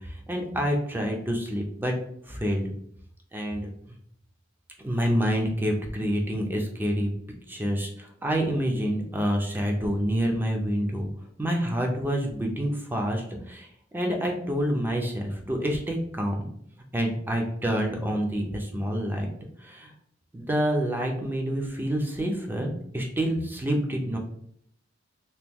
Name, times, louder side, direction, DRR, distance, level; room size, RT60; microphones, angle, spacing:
voice 1, 0.0-1.9 2.2-2.7 3.3-3.7 4.8-7.1 7.5-11.1 11.4-13.7 13.9-16.5 16.9-19.3 19.6-19.9 20.3-24.2, equal, 10° right, 2 dB, 0.4 m, -27 dB
2.9 x 2.2 x 3.5 m, 0.70 s
head